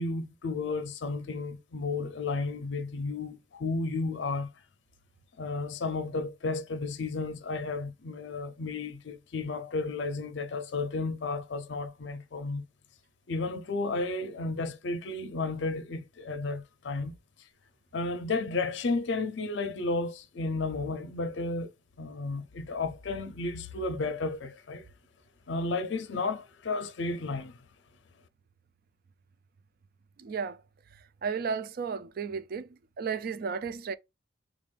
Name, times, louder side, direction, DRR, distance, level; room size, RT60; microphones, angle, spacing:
voice 1, 0.0-4.5 5.4-12.7 13.3-17.1 17.9-21.7 22.0-24.9 25.5-27.6, left 3 dB, 70° left, 0.5 m, -33 dB
voice 2, 30.2-30.6 31.2-33.9, right 5 dB, 50° right, 0.3 m, -34 dB
3.8 x 2.5 x 3.2 m
head